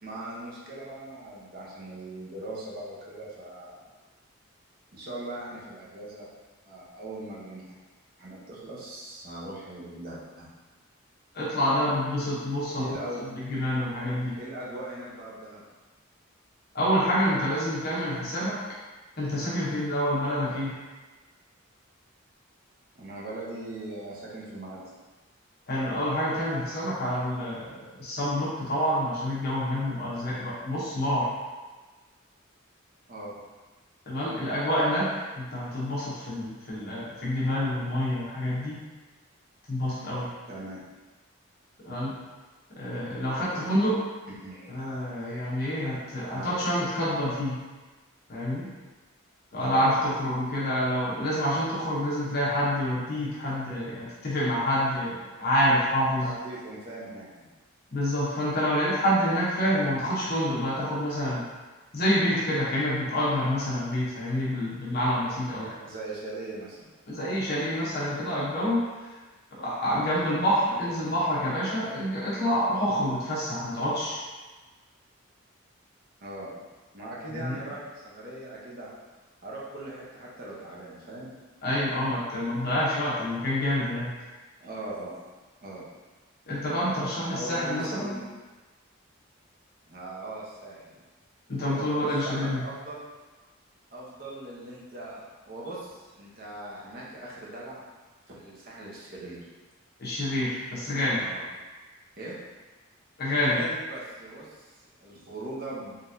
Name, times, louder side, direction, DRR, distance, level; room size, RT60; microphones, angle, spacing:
voice 1, 0.0-3.9 4.9-6.3 6.6-7.6 8.2-10.5 12.7-13.3 14.4-15.6 20.4-20.7 23.0-24.8 33.1-33.4 40.5-40.8 43.5-43.6 44.4-44.8 46.3-46.6 49.6-50.1 56.2-57.5 65.8-66.9 70.8-71.1 76.2-76.6 76.9-78.9 79.4-81.3 84.6-85.2 85.6-85.9 87.2-88.3 89.9-91.0 91.6-93.0 93.9-97.8 98.3-99.4 101.2-101.4 102.2-102.3 103.3-106.0, right 1 dB, 45° right, -6 dB, 0.9 m, -40 dB
voice 2, 11.3-12.9 13.2-14.4 16.7-18.5 19.2-20.7 25.7-31.3 34.1-35.0 35.4-38.8 39.7-40.3 41.8-42.1 42.8-44.0 44.7-47.6 48.3-48.7 49.5-56.3 57.9-61.4 61.9-65.8 67.1-69.1 69.6-74.2 77.3-77.6 81.6-84.1 86.5-88.1 91.5-92.6 100.0-101.2 103.2-103.6, equal, 50° left, -8 dB, 0.9 m, -27 dB
3.9 x 3.4 x 2.7 m, 1.3 s
head